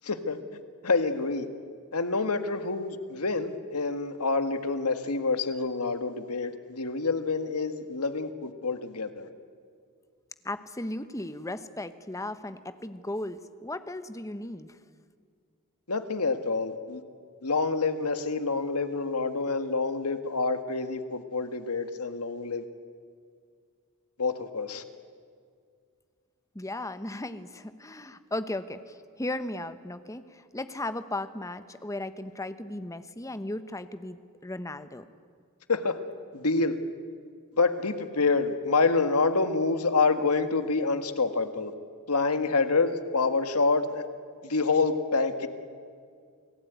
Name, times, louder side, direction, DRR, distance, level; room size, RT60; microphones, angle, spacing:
voice 1, 0.0-0.4 0.8-1.5 1.9-9.3 15.9-17.0 17.4-22.6 24.2-24.8 35.7-36.0 36.3-36.8 37.6-41.7 42.1-44.1 44.4-45.5, left 4 dB, 85° left, 9 dB, 1.7 m, -27 dB
voice 2, 10.4-14.8 26.5-35.0, left 1 dB, 15° left, 11 dB, 1.0 m, -36 dB
29.0 x 18.0 x 9.4 m, 2.1 s
head